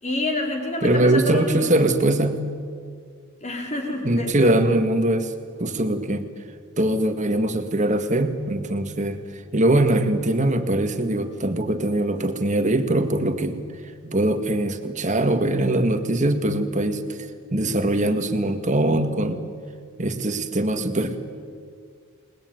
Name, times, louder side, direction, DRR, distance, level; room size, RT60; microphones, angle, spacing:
voice 1, 0.0-1.7 3.4-4.6, left 1 dB, 35° left, 1 dB, 4.8 m, -28 dB
voice 2, 0.8-2.4 4.0-5.3 5.6-6.2 6.8-9.2 9.5-13.6 14.0-17.0 17.5-19.4 20.0-21.2, right 1 dB, 35° right, 7 dB, 1.9 m, -22 dB
29.0 x 20.5 x 9.4 m, 2.1 s
head